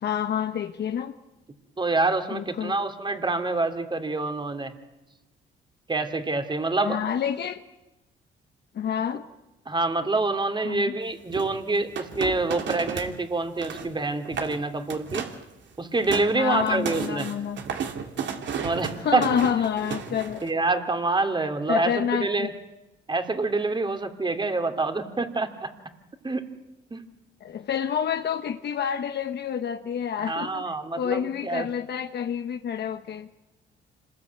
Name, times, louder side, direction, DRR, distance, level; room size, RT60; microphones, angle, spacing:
voice 1, 0.0-1.1 2.3-2.8 6.8-7.6 8.7-9.3 10.6-10.9 16.3-17.6 18.9-20.4 21.7-22.5 27.4-30.6 30.9-33.3, left 8 dB, 60° left, 7 dB, 1.1 m, -28 dB
voice 2, 1.8-4.7 5.9-7.0 9.7-15.2 15.8-17.3 18.6-19.2 20.4-22.5 23.1-25.7 26.2-26.4 26.9-27.0 30.2-31.7, right 3 dB, 25° right, 8 dB, 2.8 m, -26 dB
sound 1, 11.3-13.2 13.4-13.9 14.3-14.6 14.9-15.4 15.8-20.5, right 7 dB, 65° right, 2.7 m, -33 dB
26.5 x 20.5 x 9.5 m, 1.0 s
cardioid pair, 90°, 20 cm